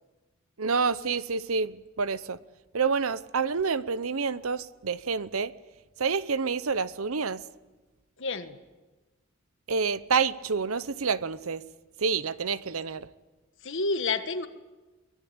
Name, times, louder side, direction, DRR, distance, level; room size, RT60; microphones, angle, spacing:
voice 1, 0.6-2.4 2.7-5.5 6.0-7.4 9.7-11.6 12.0-13.1, right 5 dB, 75° right, 0.8 m, -28 dB
voice 2, 8.2-8.6 13.6-14.5, left 3 dB, 60° left, 1.6 m, -29 dB
23.5 x 20.5 x 8.9 m
head